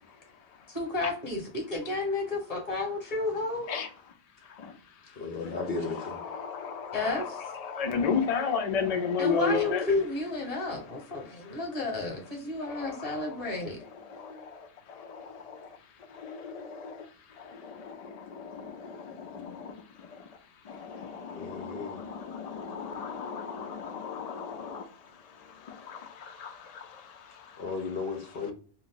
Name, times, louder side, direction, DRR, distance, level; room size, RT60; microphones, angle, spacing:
voice 1, 0.7-3.7 6.9-7.4 9.2-13.8, left 3 dB, 30° left, 1.1 m, -31 dB
voice 2, 5.2-6.2 21.3-22.0 27.6-28.5, left 4 dB, 60° left, 0.8 m, -35 dB
voice 3, 6.4-7.0 7.6-9.9 12.7-12.9 14.2-14.5 15.0-15.7 16.2-17.0 17.5-19.7 20.7-24.9 25.7-26.8, left 5 dB, 75° left, 0.3 m, -33 dB
2.5 x 2.4 x 3.6 m
omnidirectional pair, 1.3 m